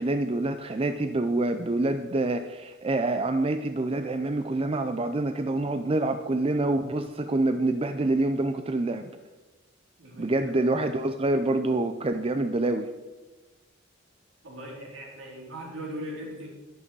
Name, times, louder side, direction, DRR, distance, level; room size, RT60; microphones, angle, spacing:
voice 1, 0.0-9.1 10.2-12.9, right 2 dB, 25° right, 8 dB, 0.5 m, -26 dB
voice 2, 10.0-10.4 14.4-16.5, equal, 65° right, -2 dB, 4.0 m, -39 dB
12.0 x 11.5 x 4.7 m, 1.2 s
head